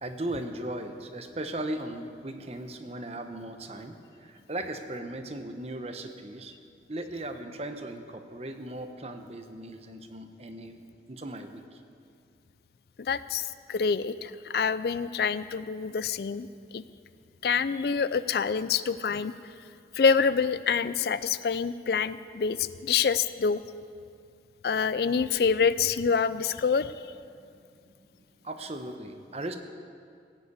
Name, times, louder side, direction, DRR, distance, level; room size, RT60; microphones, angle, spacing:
voice 1, 0.0-6.6 6.9-10.8 11.1-11.8 27.4-27.5 28.4-29.6, right 1 dB, 35° right, 7 dB, 0.9 m, -37 dB
voice 2, 13.0-16.5 16.7-16.8 17.4-19.3 19.9-23.6 24.6-26.9, left 6 dB, 60° left, 15 dB, 0.4 m, -26 dB
16.0 x 8.2 x 8.2 m, 2.3 s
head